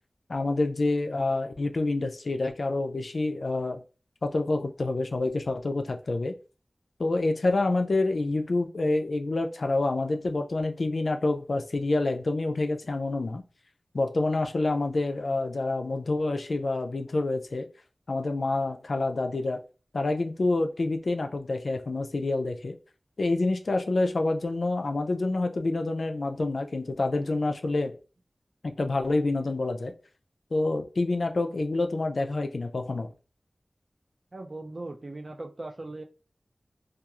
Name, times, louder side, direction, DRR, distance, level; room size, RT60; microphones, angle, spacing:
voice 1, 0.3-3.8 4.2-6.3 7.0-13.4 13.9-17.7 18.1-19.6 19.9-22.8 23.2-28.0 28.6-29.9 30.5-33.1, left 2 dB, 80° left, 0.3 m, -27 dB
voice 2, 34.3-36.0, right 2 dB, 50° right, 0.4 m, -39 dB
2.9 x 2.3 x 2.3 m
wide cardioid pair, 65°, 0 cm